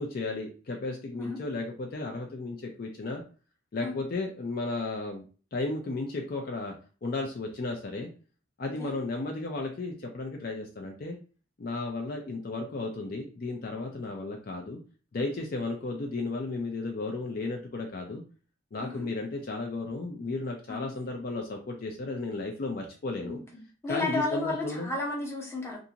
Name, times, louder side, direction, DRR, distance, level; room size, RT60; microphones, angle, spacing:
voice 1, 0.0-3.2 3.7-5.2 5.5-6.7 7.0-8.1 8.6-11.2 11.6-14.8 15.1-18.2 18.7-23.4 23.9-24.9, left 2 dB, 50° left, 1 dB, 0.4 m, -34 dB
voice 2, 23.8-25.8, left 2 dB, 15° left, -2 dB, 0.7 m, -33 dB
2.5 x 2.5 x 2.7 m, 0.37 s
head